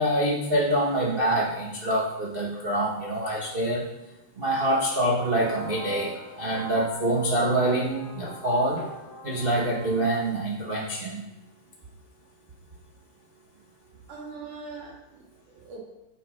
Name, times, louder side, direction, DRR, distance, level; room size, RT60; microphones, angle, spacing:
voice 1, 0.0-3.8 4.4-8.8 9.2-11.2, right 1 dB, 55° right, -4 dB, 0.6 m, -25 dB
sound 1, 5.4-10.5, left 2 dB, 65° left, 2.7 m, -41 dB
voice 2, 14.1-15.8, right 4 dB, 85° right, -3 dB, 4.1 m, -42 dB
7.9 x 7.0 x 5.2 m, 1.0 s
omnidirectional pair, 3.5 m